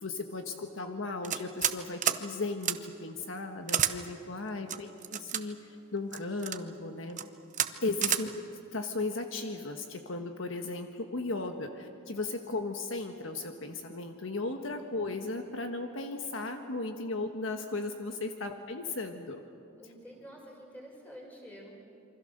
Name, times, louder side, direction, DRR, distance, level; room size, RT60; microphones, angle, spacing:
voice 1, 0.0-7.2 7.8-19.4, left 3 dB, 65° left, 5 dB, 1.4 m, -36 dB
sound 1, 1.2-1.8 2.0-2.2 2.6-2.8 3.7-3.9 4.7-5.4 6.1-6.6 7.1-7.2 7.5-7.7 8.0-8.2, right 10 dB, 35° right, 0.9 m, -29 dB
voice 2, 4.7-5.0 19.8-21.7, equal, 10° left, -2 dB, 5.9 m, -49 dB
27.5 x 24.5 x 6.7 m, 2.6 s
head